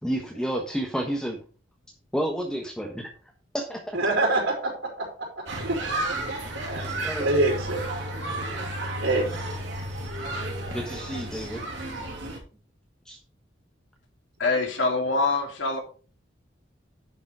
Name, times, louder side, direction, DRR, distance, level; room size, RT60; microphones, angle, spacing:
voice 1, 0.0-1.4 2.1-3.1 3.5-4.0 7.0-7.3 10.7-11.6 13.0-13.2, equal, 5° left, 1 dB, 1.2 m, -30 dB
voice 2, 3.9-4.7 5.0-5.1 5.6-5.8 6.7-7.8 9.0-9.3, right 2 dB, 90° right, -3 dB, 4.4 m, -25 dB
sound 1, 5.5-12.4, right 1 dB, 70° right, 2.9 m, -32 dB
voice 3, 14.4-15.8, left 3 dB, 80° left, 1 dB, 2.6 m, -24 dB
10.5 x 5.3 x 4.9 m, 0.38 s
head